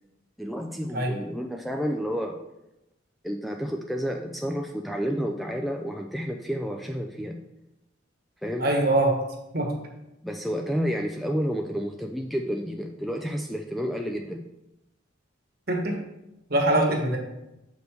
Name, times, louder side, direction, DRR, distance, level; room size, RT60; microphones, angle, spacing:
voice 1, 0.4-2.4 3.2-7.4 8.4-8.7 10.2-14.5 17.0-17.1, equal, ahead, 1 dB, 0.3 m, -30 dB
voice 2, 8.6-9.1 9.5-9.7 15.7-16.0 16.5-17.2, right 1 dB, 50° right, 2 dB, 1.3 m, -23 dB
6.6 x 5.2 x 4.5 m, 0.92 s
head